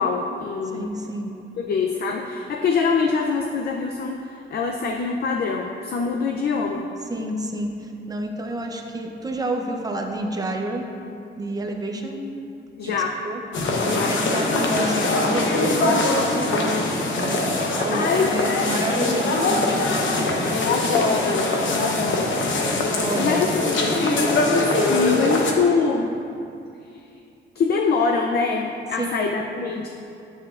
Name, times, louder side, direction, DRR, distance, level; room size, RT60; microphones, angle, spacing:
voice 1, 0.0-0.9 1.6-6.9 12.8-13.2 13.9-14.2 17.9-19.2 20.5-22.3 23.1-26.2 27.6-29.9, left 5 dB, 55° left, 2 dB, 0.4 m, -24 dB
voice 2, 0.7-1.3 7.1-10.8 11.4-12.2 12.9-13.4 13.8-19.9 20.2-20.4 23.0-23.5 29.0-29.3, right 1 dB, 20° right, 2 dB, 0.6 m, -30 dB
sound 1, 13.5-25.5, left 2 dB, 70° left, 0.9 m, -22 dB
10.5 x 8.2 x 2.4 m, 2.6 s
wide cardioid pair, 175°, 20 cm